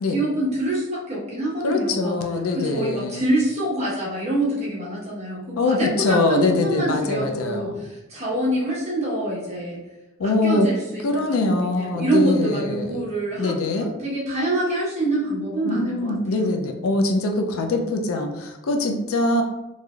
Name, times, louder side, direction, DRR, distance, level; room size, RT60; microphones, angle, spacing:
voice 1, 0.1-2.1 2.5-9.8 10.2-16.5, right 1 dB, 30° right, -7 dB, 1.0 m, -26 dB
voice 2, 1.6-3.2 5.6-7.9 10.2-10.7 11.0-13.1 13.3-13.9 15.6-19.4, left 2 dB, 80° left, 3 dB, 0.4 m, -23 dB
3.2 x 2.6 x 2.3 m, 0.99 s
head